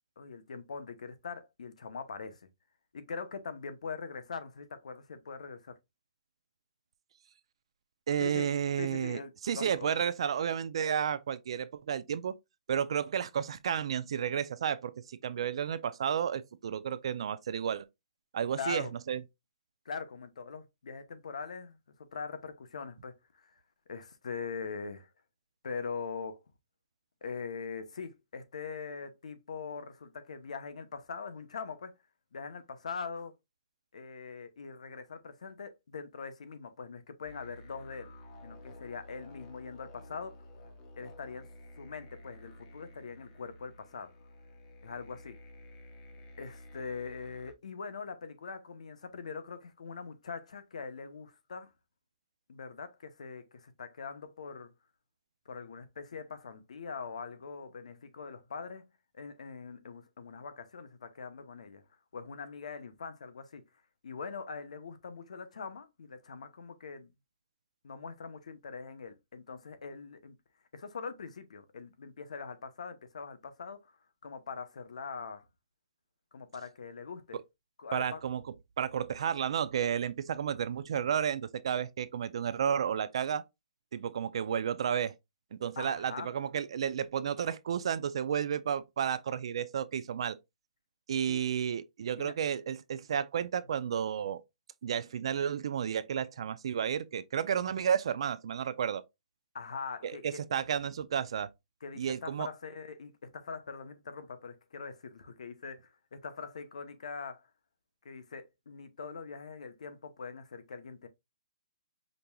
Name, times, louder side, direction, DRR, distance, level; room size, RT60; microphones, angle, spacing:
voice 1, 0.2-2.5 2.9-5.8 8.2-8.5 8.8-10.0 18.6-18.9 19.8-23.6 23.9-25.1 25.6-26.4 27.2-31.9 32.3-33.3 33.9-38.1 38.4-40.4 41.0-41.5 41.8-44.1 44.8-45.4 46.4-51.7 52.5-54.7 55.5-58.9 59.1-61.8 62.1-63.6 64.0-67.1 67.8-70.4 70.7-74.0 74.2-75.5 76.3-77.4 77.8-78.2 85.8-86.3 91.3-91.4 92.2-92.3 99.5-100.4 101.8-107.5 108.0-111.1, left 5 dB, 75° left, 0.8 m, -42 dB
voice 2, 8.1-12.4 12.7-17.9 18.3-19.2 77.9-78.4 78.8-83.4 83.9-85.1 85.5-90.4 91.1-94.4 94.8-99.0 100.0-101.5 102.0-102.5, right 8 dB, 50° right, 0.4 m, -32 dB
sound 1, 37.2-47.5, left 1 dB, 20° left, 0.6 m, -52 dB
5.1 x 2.9 x 2.3 m
hypercardioid pair, 170°, 4 cm